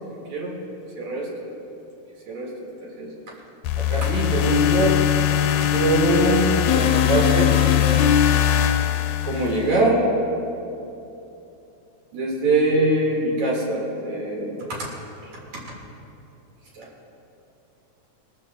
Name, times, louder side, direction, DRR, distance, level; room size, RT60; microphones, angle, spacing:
voice 1, 1.0-1.5 2.3-2.5 2.8-3.1 3.8-5.0 5.7-7.5 9.2-10.1 12.1-14.9 16.7-16.9, right 2 dB, 70° right, -4 dB, 3.4 m, -23 dB
sound 1, 3.6-9.8, left 10 dB, 80° left, 1.9 m, -20 dB
19.5 x 13.5 x 2.3 m, 2.9 s
omnidirectional pair, 3.3 m